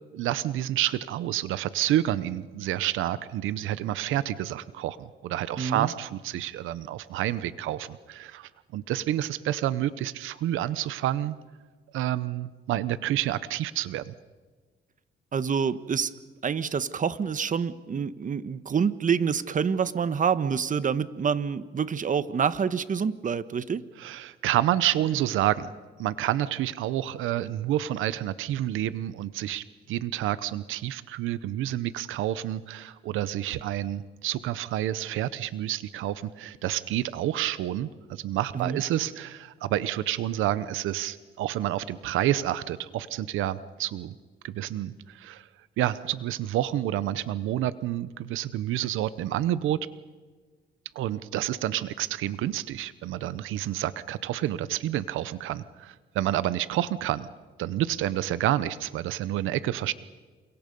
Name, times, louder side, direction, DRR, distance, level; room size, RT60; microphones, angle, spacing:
voice 1, 0.1-11.4 11.9-14.1 24.0-25.7 26.0-44.1 44.4-45.5 45.8-49.8 50.9-57.3 57.6-59.9, right 13 dB, 85° right, 15 dB, 0.9 m, -29 dB
voice 2, 5.6-5.9 15.3-16.1 16.4-23.8 38.5-38.8, right 6 dB, 40° right, 14 dB, 1.2 m, -27 dB
30.0 x 28.0 x 5.4 m, 1.4 s
cardioid pair, 90°, 20 cm